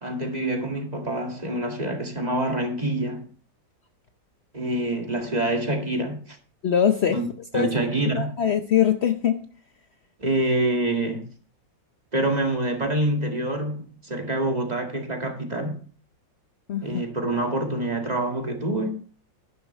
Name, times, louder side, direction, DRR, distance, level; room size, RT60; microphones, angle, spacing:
voice 1, 0.0-3.3 4.5-6.4 7.1-7.3 7.5-8.3 10.2-11.3 12.1-15.8 16.8-19.0, right 1 dB, 20° right, 2.0 m, -26 dB
voice 2, 6.6-7.2 7.5-7.7 8.1-9.5 16.7-17.0, left 9 dB, 80° left, 0.5 m, -22 dB
11.5 x 10.5 x 3.3 m
omnidirectional pair, 2.1 m